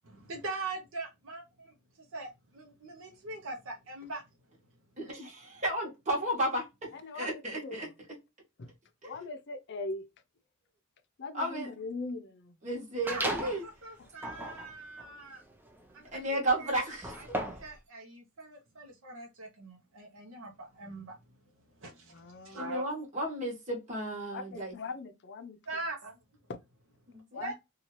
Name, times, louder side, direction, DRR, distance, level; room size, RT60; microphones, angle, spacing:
voice 1, 0.0-4.2 13.0-15.4 15.9-16.7 17.2-21.2 21.8-22.8 25.7-26.2 27.4-27.5, right 3 dB, 65° right, 0.7 m, -42 dB
voice 2, 5.0-6.6 7.1-7.9 11.3-11.7 12.6-13.6 16.1-17.1 22.5-24.7 27.1-27.4, right 1 dB, 35° right, 1.1 m, -33 dB
voice 3, 6.9-7.9 8.6-8.7 9.0-10.1 11.2-12.6 14.0-14.1 22.1-22.8 24.3-25.6 26.5-26.6 27.3-27.5, left 3 dB, 55° left, 0.5 m, -41 dB
sound 1, 13.1-13.7 14.1-17.8, right 1 dB, 10° right, 0.4 m, -37 dB
2.7 x 2.4 x 2.9 m
head